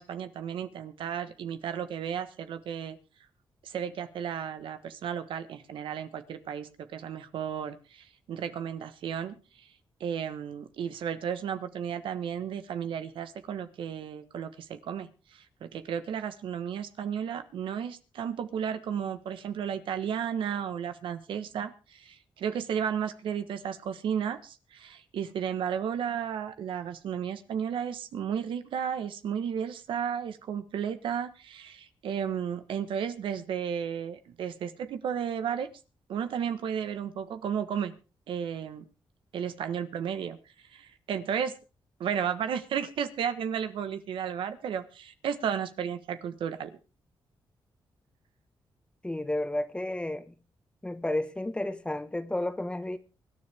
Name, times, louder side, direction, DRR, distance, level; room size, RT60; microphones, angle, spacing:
voice 1, 0.0-3.0 3.6-9.7 10.0-35.7 36.1-38.0 38.3-38.9 39.3-40.4 40.7-41.5 42.0-46.8, right 8 dB, 85° right, 1.3 m, -33 dB
voice 2, 49.0-50.3 50.8-53.0, left 1 dB, 10° left, 1.3 m, -31 dB
24.0 x 10.0 x 3.5 m
cardioid pair, 95°, 8 cm